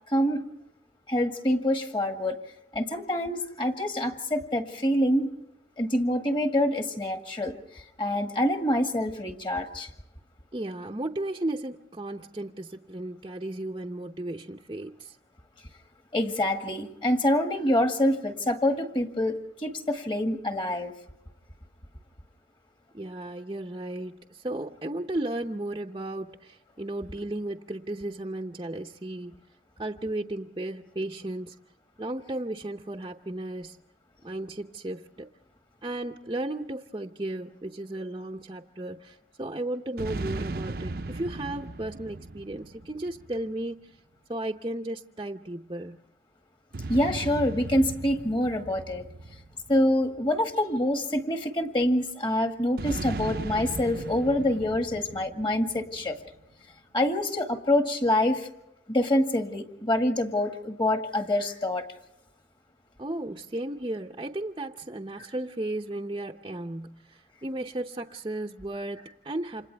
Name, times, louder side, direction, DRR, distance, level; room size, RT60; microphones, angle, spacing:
voice 1, 0.1-0.4 1.1-2.4 2.7-5.3 5.8-7.6 8.0-9.9 16.1-20.9 46.9-49.1 49.7-56.2 56.9-58.5 58.9-61.8, left 1 dB, 30° left, 1.9 m, -26 dB
voice 2, 10.5-15.2 22.9-29.3 29.8-31.6 32.0-33.8 34.2-35.3 35.8-43.9 44.3-46.0 63.0-69.7, right 1 dB, 25° right, 0.7 m, -34 dB
sound 1, 40.0-43.6 46.7-50.4 52.8-56.2, right 2 dB, 55° right, 0.7 m, -37 dB
29.5 x 27.0 x 3.4 m
head